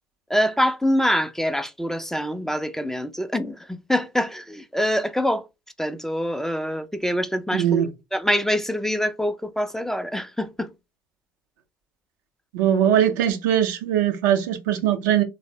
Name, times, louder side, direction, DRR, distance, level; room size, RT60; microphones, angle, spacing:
voice 1, 0.3-5.4 5.8-10.7, equal, 5° left, 0.4 m, -25 dB
voice 2, 7.5-7.9 12.5-15.2, right 10 dB, 70° right, 0.5 m, -21 dB
3.2 x 2.0 x 2.6 m
figure-of-eight pair, 60°, 11 cm